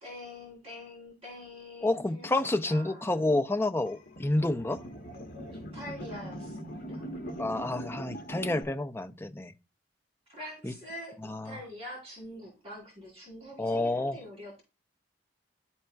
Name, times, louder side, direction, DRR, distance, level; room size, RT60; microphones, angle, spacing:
voice 1, 0.0-3.2 5.5-7.0 10.3-11.2 11.4-14.6, left 1 dB, 35° right, 3.1 m, -45 dB
voice 2, 1.8-4.8 7.4-9.5 10.6-10.7 11.2-11.6 13.6-14.2, left 2 dB, 15° left, 0.5 m, -29 dB
sound 1, 3.9-8.6, equal, 50° left, 1.1 m, -41 dB
11.5 x 4.3 x 2.2 m
head